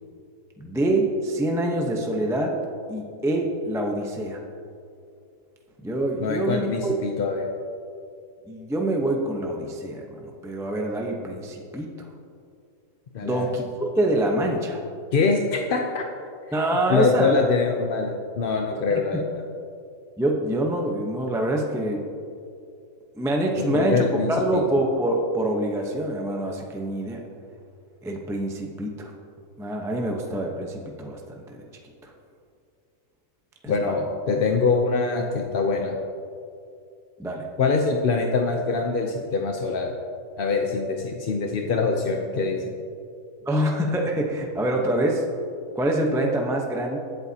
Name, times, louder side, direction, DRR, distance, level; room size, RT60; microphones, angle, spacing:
voice 1, 0.6-2.5 2.9-4.4 5.8-6.9 8.5-11.9 13.2-14.8 16.5-17.4 20.2-22.0 23.1-24.0 24.3-27.2 28.0-29.1 29.6-31.2 31.5-31.6 32.0-32.1 33.6-34.1 37.2-37.5 43.5-45.2 45.8-47.0, right 1 dB, 5° right, 0 dB, 0.6 m, -25 dB
voice 2, 6.2-7.5 13.1-13.5 15.1-16.0 16.9-19.3 23.6-24.6 33.7-36.0 37.6-39.9 40.4-42.7, left 4 dB, 50° left, 2 dB, 0.7 m, -24 dB
20.5 x 8.0 x 2.8 m, 2.5 s
omnidirectional pair, 1.6 m